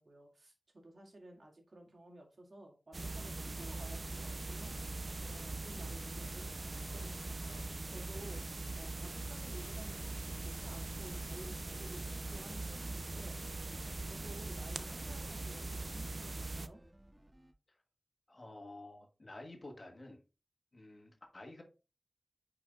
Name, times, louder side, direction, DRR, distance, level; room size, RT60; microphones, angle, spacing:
voice 1, 0.0-4.8 5.2-16.8, right 1 dB, 60° right, 2.0 m, -55 dB
sound 1, 2.9-16.7, right 2 dB, 45° right, 0.5 m, -41 dB
sound 2, 11.2-17.5, right 1 dB, 25° right, 1.5 m, -63 dB
voice 2, 18.3-20.2 20.7-21.6, left 2 dB, 50° left, 1.6 m, -51 dB
9.0 x 4.9 x 2.3 m
wide cardioid pair, 65°, 0 cm